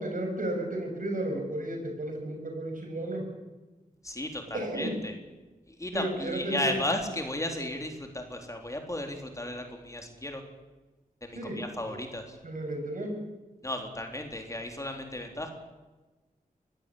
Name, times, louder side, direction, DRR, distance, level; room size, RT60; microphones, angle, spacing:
voice 1, 0.0-3.3 4.5-5.0 5.9-6.7 11.3-12.0 12.4-13.2, right 1 dB, 65° right, 3 dB, 7.1 m, -33 dB
voice 2, 4.0-5.1 5.7-10.4 11.2-12.4 13.6-15.5, left 1 dB, 20° left, 4 dB, 3.8 m, -34 dB
22.5 x 16.5 x 8.6 m, 1.2 s
wide cardioid pair, 75°, 15 cm